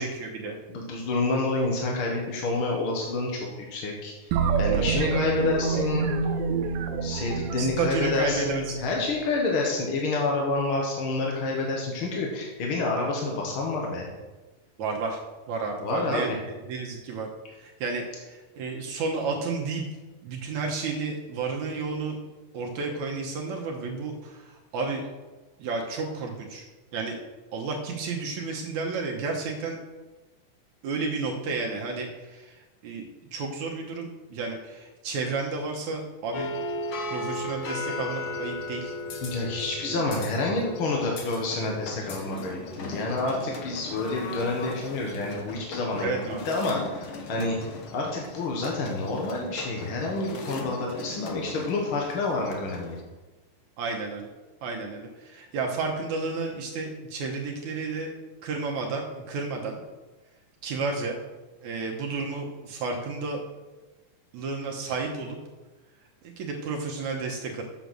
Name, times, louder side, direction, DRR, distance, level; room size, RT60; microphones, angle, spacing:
voice 1, 0.0-0.6 4.7-5.1 7.6-8.8 14.8-15.2 15.5-19.8 20.2-22.2 22.5-25.0 25.6-26.7 26.9-27.2 27.5-29.8 30.8-36.5 37.1-39.0 39.6-40.0 46.0-46.4 53.8-54.3 54.6-58.1 58.4-59.8 60.6-61.2 61.6-63.4 64.3-65.4 66.2-67.6, right 4 dB, 70° right, 0 dB, 2.1 m, -32 dB
voice 2, 0.7-4.3 4.6-6.1 7.0-14.1 15.8-16.4 39.2-47.6 47.9-53.0, left 3 dB, 60° left, -1 dB, 1.5 m, -28 dB
sound 1, 4.3-9.0, right 5 dB, 90° right, 2.5 m, -27 dB
sound 2, 36.3-53.0, left 2 dB, 75° left, 1.2 m, -37 dB
8.1 x 6.8 x 6.3 m, 1.2 s
omnidirectional pair, 4.0 m